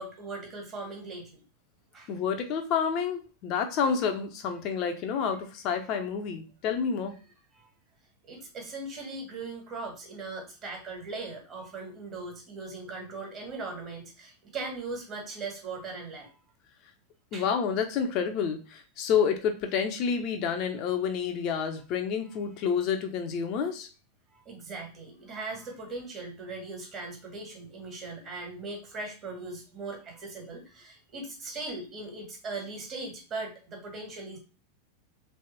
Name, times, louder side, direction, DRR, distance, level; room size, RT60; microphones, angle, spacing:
voice 1, 0.0-1.4 1.9-2.1 7.5-7.7 8.2-16.3 17.3-17.5 24.3-34.4, right 3 dB, 30° right, 1 dB, 1.7 m, -39 dB
voice 2, 2.1-7.1 17.3-23.9, left 7 dB, 40° left, 5 dB, 0.8 m, -29 dB
3.5 x 3.4 x 4.2 m, 0.33 s
figure-of-eight pair, 90°, 0 cm